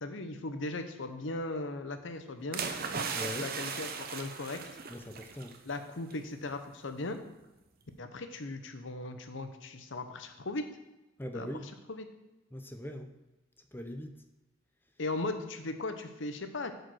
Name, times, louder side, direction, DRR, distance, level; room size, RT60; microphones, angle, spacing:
voice 1, 0.0-2.6 3.4-4.6 5.6-7.2 8.0-10.7 11.3-11.5 11.9-12.1 15.0-16.7, left 2 dB, 65° left, 8 dB, 0.9 m, -37 dB
sound 1, 2.5-5.6 5.9-6.1, right 5 dB, 50° right, 0.8 m, -37 dB
voice 2, 3.2-3.5 4.9-5.5 11.2-11.6 12.5-13.1 13.7-14.1, equal, 10° left, 6 dB, 0.6 m, -40 dB
8.4 x 5.1 x 6.2 m, 1.0 s
head